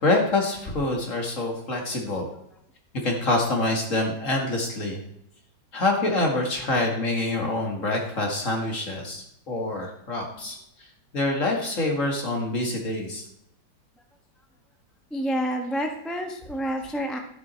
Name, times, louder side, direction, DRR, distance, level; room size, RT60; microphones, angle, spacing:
voice 1, 0.0-2.3 3.0-5.0 5.7-10.6 11.1-13.2, left 2 dB, 40° left, 1 dB, 2.5 m, -26 dB
voice 2, 15.1-17.2, equal, ahead, 3 dB, 0.9 m, -29 dB
12.5 x 10.0 x 4.5 m, 0.76 s
omnidirectional pair, 2.0 m